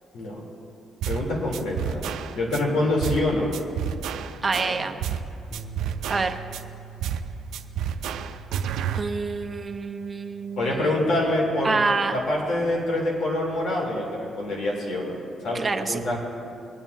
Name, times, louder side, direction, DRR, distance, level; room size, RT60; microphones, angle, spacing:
sound 1, 1.0-1.3 1.5-2.6 3.0-3.3 3.5-5.3 5.5-6.6 7.0-7.3 7.5-9.0, right 8 dB, 85° right, 0.5 m, -30 dB
voice 1, 1.1-3.5 4.6-4.8 10.6-11.8 12.1-15.1 15.4-16.2, left 1 dB, 75° left, -3 dB, 3.1 m, -26 dB
voice 2, 4.4-5.0 6.1-6.4 8.9-10.9 11.6-12.2 15.5-16.0, right 4 dB, 30° right, 5 dB, 0.8 m, -27 dB
Bass guitar, 5.5-11.8, right 8 dB, 20° left, 1.3 m, -45 dB
22.5 x 9.1 x 2.7 m, 2.6 s
cardioid pair, 90°, 0 cm